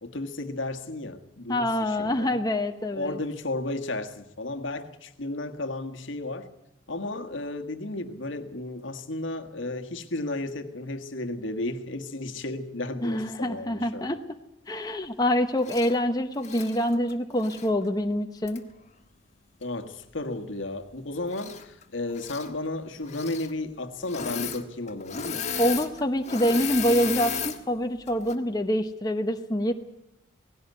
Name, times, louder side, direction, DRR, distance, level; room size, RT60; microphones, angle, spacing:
voice 1, 0.0-2.4 2.9-6.5 6.9-14.1 19.6-25.4, left 2 dB, 70° left, 1.6 m, -33 dB
voice 2, 1.5-3.2 13.0-14.2 14.7-18.6 25.6-29.7, equal, 20° left, 0.9 m, -26 dB
Engine / Mechanisms, 15.6-15.9 16.4-17.7 18.5-18.6 21.3-21.8 22.1-22.5 23.1-23.5 24.0-24.6 24.9-27.6 28.1-28.4, left 7 dB, 35° left, 1.6 m, -34 dB
18.5 x 16.5 x 9.4 m
head